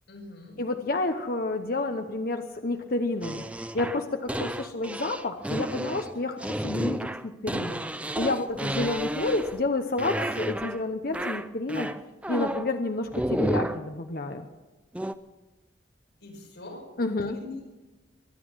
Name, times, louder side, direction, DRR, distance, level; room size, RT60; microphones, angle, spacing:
voice 1, 0.1-0.6 8.6-8.7 16.2-16.9 17.2-17.5, left 2 dB, 70° left, 0 dB, 5.5 m, -44 dB
voice 2, 0.6-7.8 8.2-11.9 12.3-14.5 17.0-17.4, left 2 dB, 50° left, 5 dB, 0.9 m, -30 dB
sound 1, 3.2-9.7 10.0-10.8 11.1-12.7 13.1-13.9 14.9-15.1, right 1 dB, 5° right, 0.4 m, -31 dB
23.5 x 9.4 x 6.3 m, 1.2 s
head